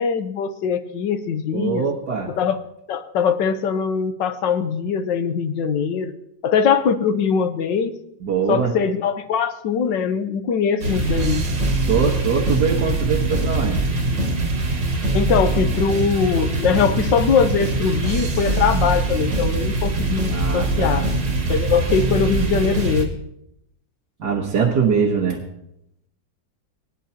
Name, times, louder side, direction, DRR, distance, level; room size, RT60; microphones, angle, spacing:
voice 1, 0.0-1.8 2.3-2.6 2.9-6.1 6.4-7.9 8.5-11.4 15.1-21.1 21.5-23.1, left 6 dB, 75° left, 9 dB, 1.5 m, -21 dB
voice 2, 1.5-2.3 8.2-8.7 11.8-13.8 20.3-21.1 24.2-25.4, right 6 dB, 65° right, -3 dB, 1.9 m, -22 dB
sound 1, 10.8-23.0, right 2 dB, 80° right, 2.9 m, -22 dB
21.0 x 10.5 x 2.9 m, 0.80 s
omnidirectional pair, 2.0 m